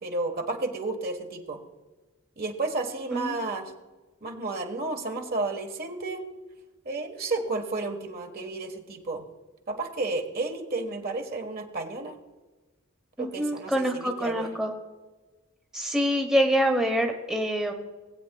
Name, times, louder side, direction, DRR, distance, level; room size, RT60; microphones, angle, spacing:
voice 1, 0.0-1.6 2.4-3.7 4.2-6.2 6.8-9.2 9.7-12.1 13.2-14.5, right 3 dB, 50° right, 4 dB, 1.3 m, -32 dB
voice 2, 3.1-3.5 13.2-14.7 15.7-17.7, equal, 5° right, 2 dB, 0.9 m, -26 dB
19.0 x 8.6 x 2.3 m, 1.2 s
head